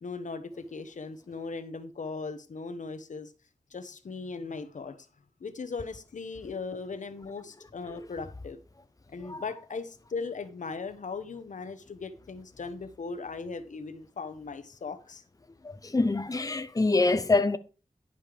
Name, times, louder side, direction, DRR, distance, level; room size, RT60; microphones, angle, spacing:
voice 1, 0.0-3.3 3.7-5.0 5.4-8.6 9.1-15.2, left 4 dB, 90° left, 1.1 m, -38 dB
voice 2, 15.9-17.6, left 3 dB, 30° left, 0.9 m, -24 dB
11.0 x 5.4 x 5.1 m
wide cardioid pair, 60°, 13 cm